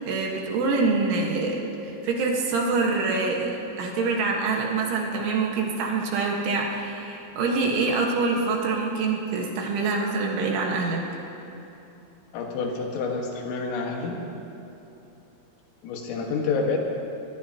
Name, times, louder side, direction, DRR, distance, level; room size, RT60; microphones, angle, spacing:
voice 1, 0.0-3.5 3.8-11.0, right 3 dB, 70° right, -1 dB, 3.7 m, -25 dB
voice 2, 12.3-14.2 15.8-16.8, left 4 dB, 80° left, 0 dB, 4.3 m, -28 dB
22.5 x 21.5 x 2.9 m, 2.9 s
omnidirectional pair, 5.9 m